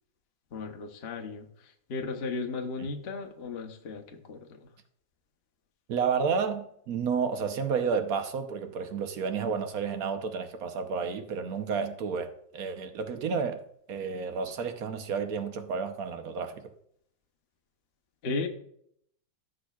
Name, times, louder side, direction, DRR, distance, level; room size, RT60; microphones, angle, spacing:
voice 1, 0.5-4.7 18.2-18.5, left 3 dB, 45° left, 4 dB, 0.9 m, -35 dB
voice 2, 5.9-13.6 13.9-16.7, right 6 dB, 60° right, 7 dB, 1.2 m, -31 dB
14.5 x 6.3 x 2.4 m, 0.70 s
omnidirectional pair, 2.0 m